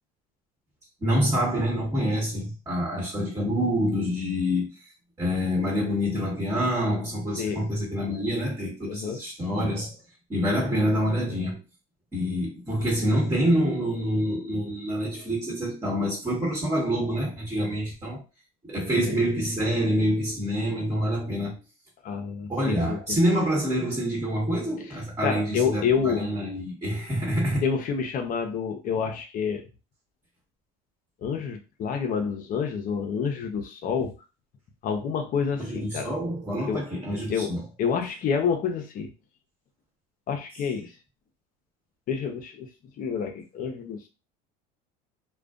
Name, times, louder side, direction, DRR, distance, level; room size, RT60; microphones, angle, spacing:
voice 1, 1.0-4.7 5.2-9.9 10.3-11.6 12.1-18.2 18.6-21.6 22.5-27.6 35.6-37.6, equal, 20° right, 1.2 m, -26 dB
voice 2, 8.9-9.2 18.9-19.1 22.0-23.2 25.2-26.3 27.6-29.6 31.2-34.1 34.8-36.1 36.7-36.8 37.3-39.1 40.3-40.9 42.1-42.7 43.0-44.1, left 6 dB, 45° left, 0.6 m, -28 dB
2.4 x 2.2 x 2.4 m
supercardioid pair, 90°, 19 cm